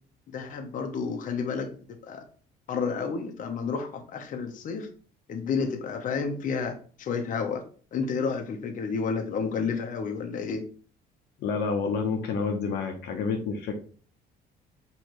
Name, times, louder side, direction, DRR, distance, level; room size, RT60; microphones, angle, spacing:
voice 1, 0.3-2.2 2.7-4.9 5.3-7.6 7.9-10.6, left 5 dB, 50° left, 4 dB, 0.8 m, -31 dB
voice 2, 11.4-13.8, left 5 dB, 75° left, 3 dB, 0.8 m, -29 dB
4.6 x 3.2 x 3.0 m, 0.41 s
cardioid pair, 110°, 17 cm